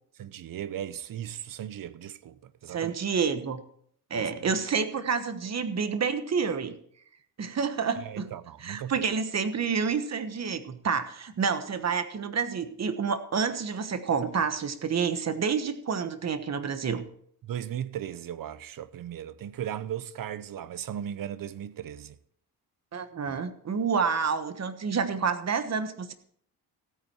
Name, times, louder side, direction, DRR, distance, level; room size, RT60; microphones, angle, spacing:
voice 1, 0.2-2.9 4.1-4.3 8.0-9.0 17.4-22.2 23.3-23.4, right 10 dB, 55° right, 0.8 m, -37 dB
voice 2, 2.7-3.6 4.1-6.7 7.4-8.3 8.6-17.0 22.9-26.1, right 6 dB, 40° right, 1.2 m, -29 dB
15.5 x 9.0 x 4.4 m
cardioid pair, 100°, 39 cm